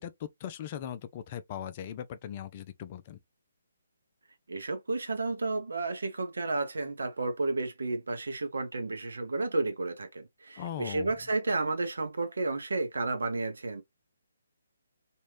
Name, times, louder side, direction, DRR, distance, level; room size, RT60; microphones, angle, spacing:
voice 1, 0.0-3.2 10.6-11.1, left 10 dB, 30° left, 0.5 m, -39 dB
voice 2, 4.5-13.8, right 3 dB, 65° right, 0.9 m, -32 dB
3.1 x 2.6 x 3.0 m
figure-of-eight pair, 140°, 0 cm